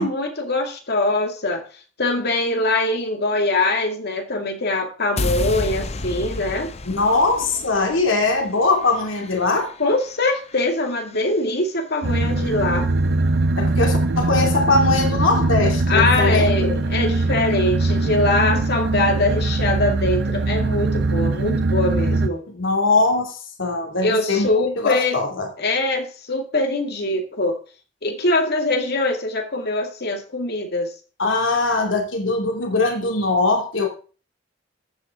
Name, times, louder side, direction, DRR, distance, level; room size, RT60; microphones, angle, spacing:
voice 1, 0.0-1.7 2.0-6.7 9.8-12.9 15.9-22.4 24.0-25.2 25.6-27.6 28.0-30.9, left 2 dB, 55° left, 2.3 m, -22 dB
sound 1, 5.2-11.3, left 2 dB, 35° left, 0.7 m, -32 dB
voice 2, 6.8-9.7 13.6-16.8 22.5-24.5 24.8-25.5 31.2-33.9, left 3 dB, 80° left, 2.7 m, -21 dB
sound 2, 12.0-22.3, right 2 dB, 60° right, 0.7 m, -21 dB
14.5 x 8.0 x 3.7 m
head